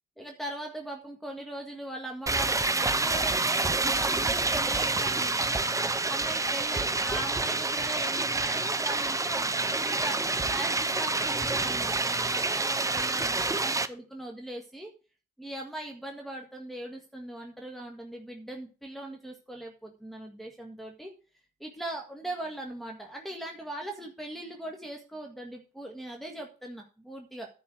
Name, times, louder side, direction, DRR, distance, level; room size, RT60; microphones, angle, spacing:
voice 1, 0.2-5.6 6.0-9.5 9.8-14.9 15.4-21.1 21.6-27.5, right 1 dB, ahead, 0 dB, 1.7 m, -40 dB
sound 1, 2.3-13.9, right 3 dB, 15° right, 0.7 m, -28 dB
10.5 x 4.2 x 7.4 m, 0.34 s
cardioid pair, 90°, 20 cm